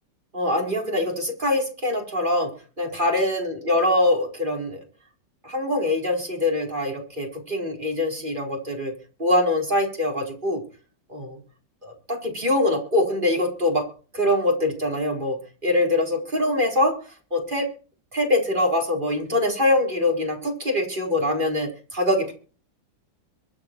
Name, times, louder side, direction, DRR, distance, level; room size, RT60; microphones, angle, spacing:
voice 1, 0.3-2.5 2.8-4.8 5.4-8.9 9.2-10.6 11.1-11.4 11.8-13.9 14.1-17.0 17.3-17.7 18.1-22.3, left 1 dB, 25° right, 1 dB, 4.8 m, -23 dB
23.5 x 8.8 x 4.6 m, 0.38 s
omnidirectional pair, 2.0 m